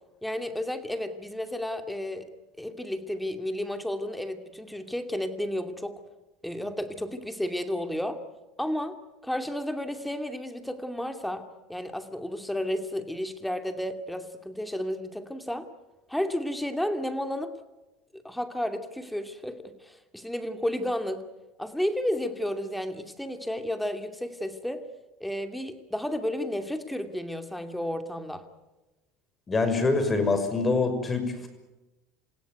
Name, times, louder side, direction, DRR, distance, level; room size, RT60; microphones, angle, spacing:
voice 1, 0.2-2.3 2.6-6.0 6.4-8.2 8.6-9.0 9.2-15.7 16.1-17.6 18.1-21.2 21.6-24.8 25.2-28.5, left 1 dB, 5° left, 7 dB, 2.6 m, -32 dB
voice 2, 29.5-31.5, left 3 dB, 25° left, 9 dB, 6.1 m, -25 dB
28.0 x 16.5 x 9.5 m, 1.1 s
supercardioid pair, 100°, 0 cm